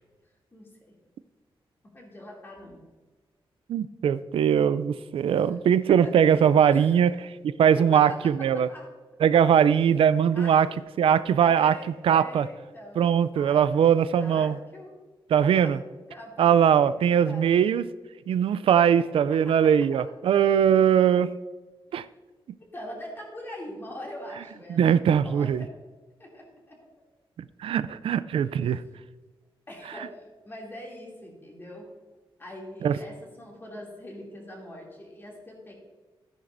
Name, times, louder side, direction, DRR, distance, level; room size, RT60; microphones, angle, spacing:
voice 1, 0.5-1.0 1.8-2.8 5.3-5.4 5.9-7.0 7.6-8.9 10.3-10.8 11.4-13.0 13.3-15.0 15.6-15.8 16.1-17.6 19.3-19.6 19.9-20.0 22.6-25.7 26.2-26.8 28.3-28.5 29.7-31.9 32.4-35.7, left 1 dB, 25° left, -2 dB, 2.6 m, -43 dB
voice 2, 3.7-8.7 9.2-10.7 11.0-11.8 12.0-12.5 13.0-14.6 15.3-15.8 16.4-17.9 18.3-21.3 21.9-22.0 24.7-25.6 27.6-28.8 32.8-32.9, right 8 dB, 85° right, 14 dB, 0.4 m, -21 dB
13.5 x 10.0 x 2.6 m, 1.3 s
wide cardioid pair, 160°, 9 cm